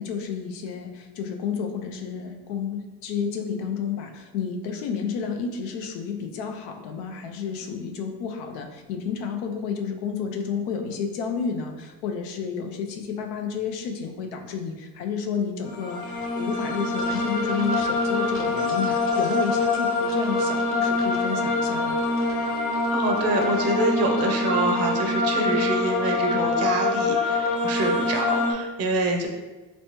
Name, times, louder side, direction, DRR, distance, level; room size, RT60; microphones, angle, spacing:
voice 1, 0.0-22.0, left 6 dB, 90° left, 4 dB, 0.6 m, -31 dB
sound 1, 15.7-28.5, left 2 dB, 40° left, 0.6 m, -25 dB
voice 2, 22.9-29.3, right 2 dB, 45° right, 2 dB, 0.6 m, -26 dB
3.2 x 3.1 x 3.0 m, 1.2 s
cardioid pair, 140°, 35 cm